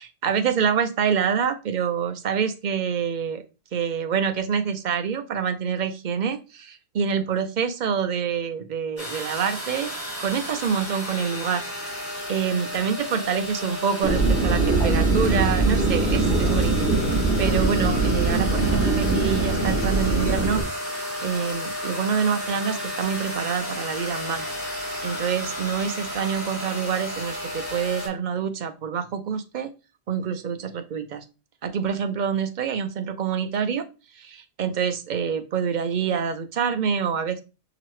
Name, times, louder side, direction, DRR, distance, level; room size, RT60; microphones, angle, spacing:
voice 1, 0.0-3.4 3.7-9.9 10.2-11.6 12.3-20.6 21.2-24.5 25.0-29.7 30.1-31.2 31.6-33.9 34.2-37.4, right 7 dB, 55° right, 8 dB, 0.6 m, -26 dB
sound 1, 9.0-28.1, left 1 dB, 35° left, 2.9 m, -32 dB
sound 2, 14.0-20.6, right 3 dB, 65° left, 2.3 m, -22 dB
5.8 x 2.8 x 3.1 m, 0.31 s
omnidirectional pair, 1.1 m